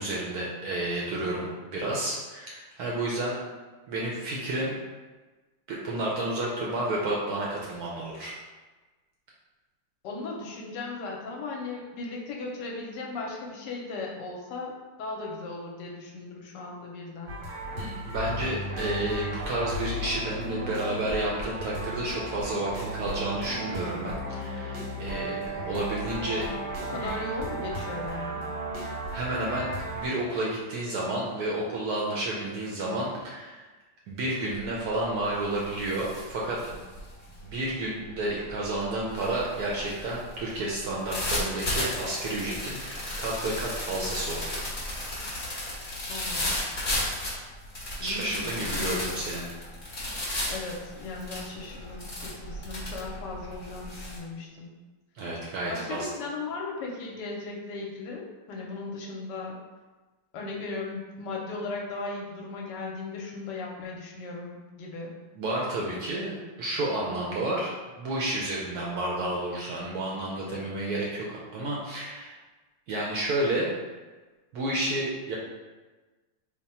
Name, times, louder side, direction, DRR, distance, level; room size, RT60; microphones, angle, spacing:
voice 1, 0.0-3.4 3.9-4.7 5.7-8.4 17.8-26.5 26.9-27.1 29.1-33.7 34.1-36.8 37.4-44.7 48.0-49.5 55.2-56.1 65.4-72.3 72.9-73.7 74.5-75.4, right 1 dB, 70° right, -4 dB, 0.9 m, -31 dB
voice 2, 10.0-17.3 26.8-28.5 46.1-46.6 48.0-48.8 50.5-54.7 55.7-59.6 60.3-65.1, left 3 dB, 75° left, -1 dB, 1.1 m, -37 dB
sound 1, 17.3-30.1, equal, 90° right, 1.6 m, -35 dB
sound 2, 34.5-34.9 35.2-54.2, left 1 dB, 35° left, 0.6 m, -34 dB
3.4 x 2.1 x 4.1 m, 1.3 s
omnidirectional pair, 2.0 m